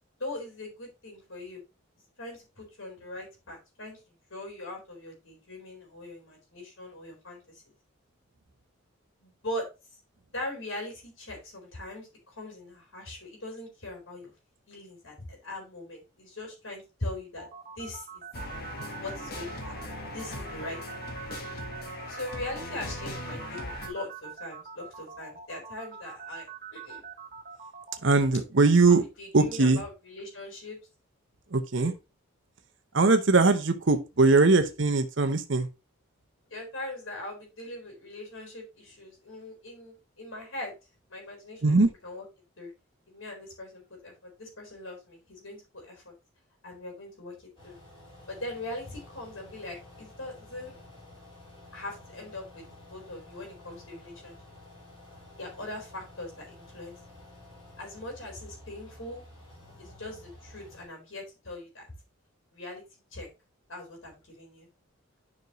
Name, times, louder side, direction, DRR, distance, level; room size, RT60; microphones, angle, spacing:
voice 1, 0.2-1.6 2.2-7.6 9.2-9.7 10.3-14.3 14.7-17.5 17.8-18.2 19.0-21.4 22.1-27.0 28.9-30.8 31.7-31.9 36.5-40.7 41.1-42.2 42.6-42.7 43.1-46.1 46.6-47.8 48.3-50.7 51.7-52.6 52.9-54.4 55.4-57.0 57.8-59.2 59.8-61.9 62.5-62.8 63.1-63.3 63.7-64.7, left 1 dB, 70° left, 4.2 m, -41 dB
sound 1, 17.4-28.0, right 6 dB, 40° right, 1.1 m, -44 dB
sound 2, 18.3-23.9, left 1 dB, 45° left, 1.6 m, -39 dB
voice 2, 28.0-29.0 29.3-29.8 31.5-31.9 32.9-35.7 41.6-41.9, right 3 dB, 60° right, 0.8 m, -21 dB
sound 3, 47.6-60.9, left 1 dB, 25° left, 4.7 m, -51 dB
9.4 x 5.3 x 3.1 m
head